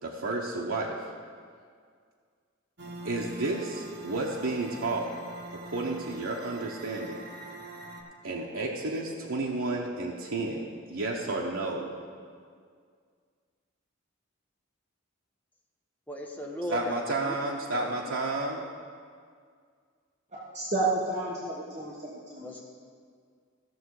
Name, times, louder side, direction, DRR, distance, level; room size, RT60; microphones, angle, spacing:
voice 1, 0.0-1.0 3.0-5.1 5.5-7.2 8.2-11.9 16.7-18.6, right 2 dB, 85° right, -2 dB, 0.9 m, -31 dB
sound 1, 2.8-8.0, right 2 dB, 55° right, 1.4 m, -43 dB
voice 2, 16.1-17.3 17.7-18.2 22.4-22.6, left 1 dB, 10° left, -1 dB, 1.0 m, -37 dB
voice 3, 20.3-22.5, right 2 dB, 35° right, -6 dB, 1.3 m, -31 dB
15.5 x 6.6 x 4.8 m, 2.1 s
head